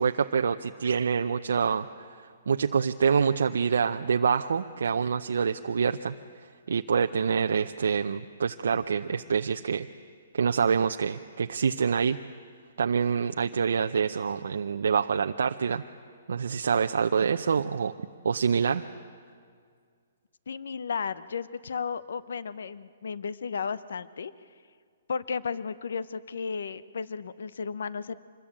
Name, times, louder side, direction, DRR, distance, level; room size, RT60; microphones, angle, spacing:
voice 1, 0.0-6.1 6.7-9.9 10.3-12.2 12.8-15.8 16.3-17.9 18.2-18.8, right 6 dB, 80° right, 6 dB, 0.7 m, -26 dB
voice 2, 20.5-24.3 25.1-28.2, left 5 dB, 75° left, 16 dB, 0.8 m, -34 dB
26.0 x 21.0 x 8.8 m, 2.1 s
hypercardioid pair, 165°, 0 cm